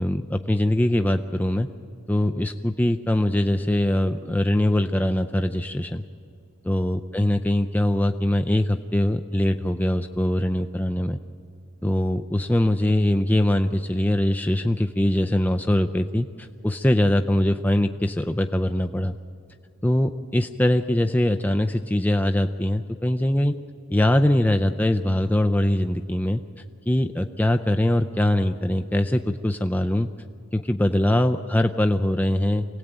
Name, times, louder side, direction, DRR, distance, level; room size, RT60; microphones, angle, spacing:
voice 1, 0.0-1.7 2.1-6.0 6.7-11.2 11.8-19.2 19.8-23.5 23.9-26.4 26.9-30.1 30.5-32.7, left 1 dB, 10° left, 6 dB, 0.5 m, -22 dB
25.0 x 17.5 x 9.0 m, 2.4 s
head